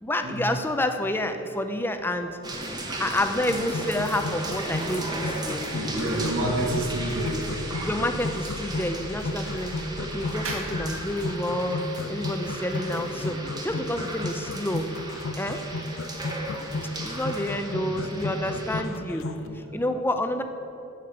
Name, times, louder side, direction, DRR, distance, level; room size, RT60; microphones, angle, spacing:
voice 1, 0.0-2.4 3.0-5.6 7.8-14.9 15.4-15.6 16.6-16.7 17.0-19.3 19.5-20.4, left 1 dB, 10° left, 7 dB, 0.5 m, -29 dB
sound 1, 2.4-18.8, right 1 dB, 20° right, 1.1 m, -36 dB
sound 2, 3.5-19.4, left 2 dB, 70° left, 0.6 m, -34 dB
sound 3, 4.7-12.0, equal, 30° left, 1.6 m, -43 dB
voice 2, 5.7-7.4 7.7-7.9 10.4-11.0 18.5-18.6 19.4-19.5, right 1 dB, 80° right, -1 dB, 2.1 m, -29 dB
15.5 x 5.2 x 6.7 m, 2.8 s
head